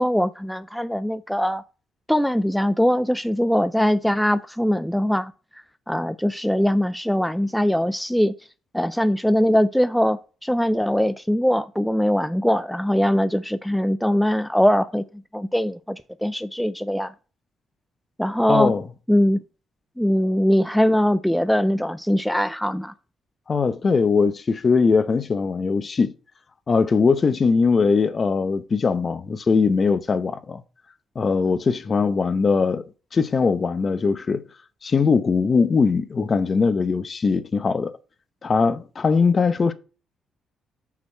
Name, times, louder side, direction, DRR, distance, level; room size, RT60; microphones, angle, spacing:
voice 1, 0.0-1.6 2.1-5.3 5.9-8.3 8.7-15.0 15.3-17.1 18.2-18.7 19.1-19.4 20.0-22.9, equal, ahead, 0.4 m, -21 dB
voice 2, 18.5-18.8 23.5-26.1 26.7-30.6 31.2-32.8 33.1-34.5 34.8-38.0 38.4-39.7, left 5 dB, 40° left, 0.7 m, -20 dB
6.3 x 5.9 x 4.4 m
cardioid pair, 90°, 0 cm